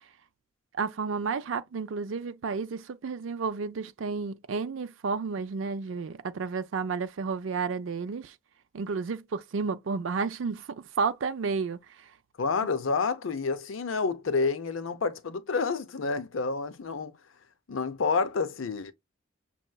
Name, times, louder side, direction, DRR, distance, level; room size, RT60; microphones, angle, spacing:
voice 1, 0.8-8.3 8.7-10.7 11.0-11.8, right 5 dB, 75° right, 0.5 m, -31 dB
voice 2, 12.4-17.2 17.7-18.9, left 4 dB, 90° left, 0.6 m, -29 dB
6.4 x 2.9 x 2.2 m
head